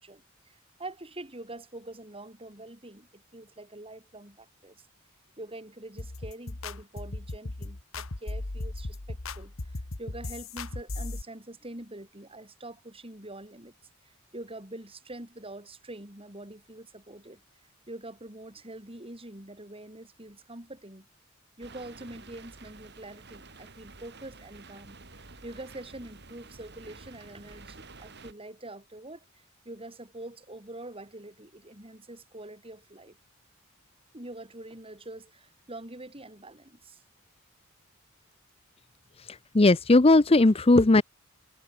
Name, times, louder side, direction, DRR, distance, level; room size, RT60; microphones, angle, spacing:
voice 1, 0.0-4.9 5.4-13.7 14.0-17.4 17.9-21.1 21.6-33.2 34.1-37.0, right 1 dB, 25° right, 6.1 m, -45 dB
sound 1, 6.0-11.2, left 2 dB, 75° left, 1.6 m, -37 dB
sound 2, 21.6-28.3, right 3 dB, 55° right, 5.4 m, -50 dB
voice 2, 39.3-41.0, left 2 dB, 30° left, 0.7 m, -18 dB
head